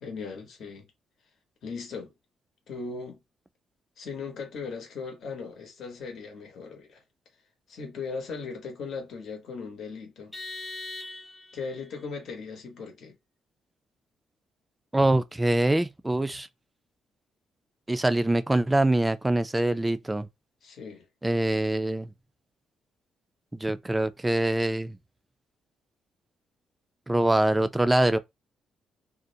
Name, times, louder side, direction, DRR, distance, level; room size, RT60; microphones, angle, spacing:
voice 1, 0.0-0.9 1.6-2.1 2.7-3.2 4.0-7.0 7.7-10.3 11.5-13.2 20.6-21.1, left 4 dB, 60° left, 0.9 m, -38 dB
Vehicle horn car horn honking, 10.3-11.7, left 2 dB, 10° left, 0.7 m, -39 dB
voice 2, 14.9-16.5 17.9-20.3 21.2-22.1 23.5-25.0 27.1-28.2, right 1 dB, 10° right, 0.3 m, -24 dB
2.5 x 2.0 x 2.6 m
cardioid pair, 90°, 0 cm